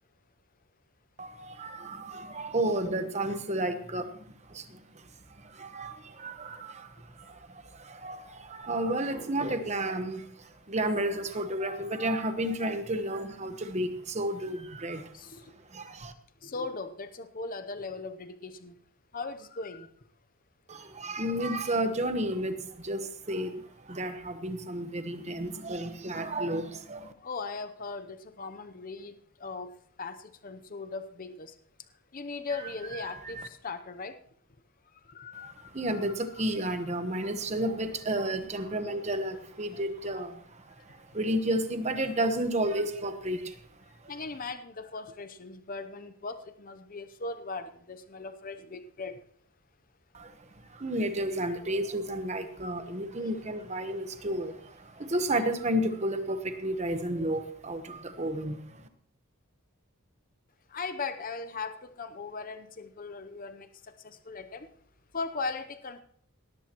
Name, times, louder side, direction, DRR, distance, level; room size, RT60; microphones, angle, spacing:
voice 1, 1.2-5.0 5.4-15.1 15.7-16.1 20.7-27.1 32.9-33.5 35.4-43.6 44.0-44.1 50.1-58.9, right 1 dB, 30° right, 8 dB, 1.1 m, -32 dB
voice 2, 16.4-18.7 19.1-19.9 27.2-29.1 29.4-29.7 30.0-30.2 30.4-31.5 32.1-34.1 35.1-36.0 36.4-36.5 37.2-37.3 44.1-49.2 53.2-53.3 60.7-63.7 64.0-64.7 65.1-66.0, left 4 dB, 40° left, 9 dB, 0.7 m, -38 dB
18.0 x 13.5 x 3.0 m, 0.64 s
head